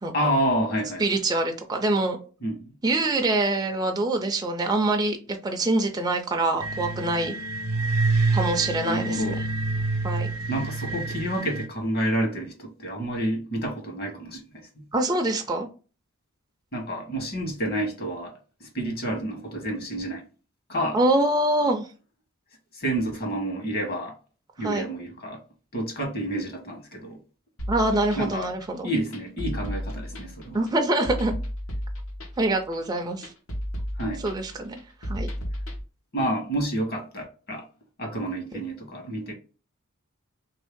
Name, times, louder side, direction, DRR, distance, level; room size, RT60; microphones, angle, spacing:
voice 1, 0.1-1.0 2.4-2.7 8.8-9.4 10.5-14.8 16.7-18.3 18.6-20.2 20.7-21.0 22.7-24.2 24.6-25.4 25.7-27.2 28.2-28.5 28.8-30.6 34.0-34.2 36.1-37.7 38.0-39.3, right 1 dB, 45° left, 1.2 m, -29 dB
voice 2, 1.0-2.2 2.8-7.3 8.3-9.4 10.0-10.3 14.9-15.7 20.9-21.8 24.6-24.9 27.7-28.9 30.5-31.3 32.4-33.3 34.2-35.3 38.5-38.6, right 2 dB, 20° right, 0.4 m, -25 dB
sound 1, 6.6-11.7, right 3 dB, 90° right, 0.6 m, -27 dB
sound 2, 27.6-35.8, equal, 80° left, 1.1 m, -33 dB
3.2 x 2.6 x 3.5 m
head